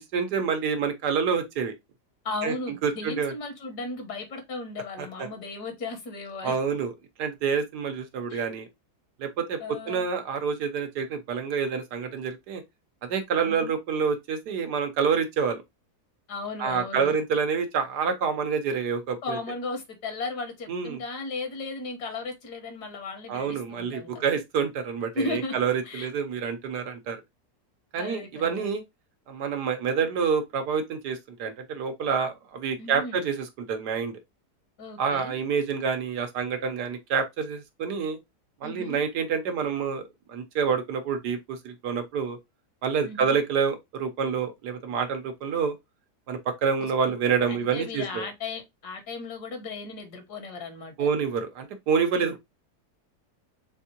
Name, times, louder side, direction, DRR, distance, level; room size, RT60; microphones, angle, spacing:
voice 1, 0.0-1.7 2.4-2.5 2.8-3.3 5.0-5.3 6.4-6.9 7.2-8.7 9.2-9.6 9.9-12.6 13.1-15.6 16.6-19.4 20.7-21.0 23.3-27.2 27.9-28.8 29.3-34.2 35.0-38.2 38.6-40.0 40.3-42.4 42.8-45.7 46.3-48.2 51.0-52.4, right 6 dB, 80° right, 1.4 m, -27 dB
voice 2, 2.3-6.6 8.3-8.5 9.6-10.1 13.5-13.7 16.3-17.1 19.2-24.3 25.1-25.5 25.8-26.1 28.0-28.7 32.8-33.3 34.8-35.4 38.6-39.0 43.0-43.4 46.8-46.9 47.5-51.1, left 3 dB, 70° left, 1.8 m, -36 dB
4.2 x 3.6 x 2.8 m
omnidirectional pair, 1.8 m